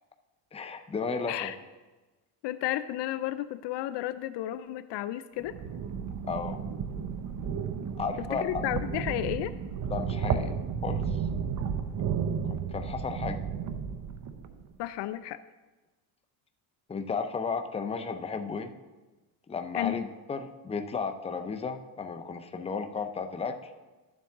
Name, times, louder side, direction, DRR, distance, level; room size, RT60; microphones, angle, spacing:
voice 1, 0.5-1.5 6.3-6.6 8.0-8.7 9.8-10.5 10.8-11.2 12.7-13.4 16.9-18.7 19.5-23.7, left 5 dB, 10° left, 7 dB, 0.6 m, -34 dB
voice 2, 2.4-5.5 8.3-9.5 14.8-15.4 19.7-20.1, left 14 dB, 60° left, 13 dB, 0.5 m, -32 dB
sound 1, 5.4-14.6, right 6 dB, 35° right, 0.8 m, -33 dB
12.5 x 7.3 x 3.6 m, 1.2 s
cardioid pair, 110°, 50 cm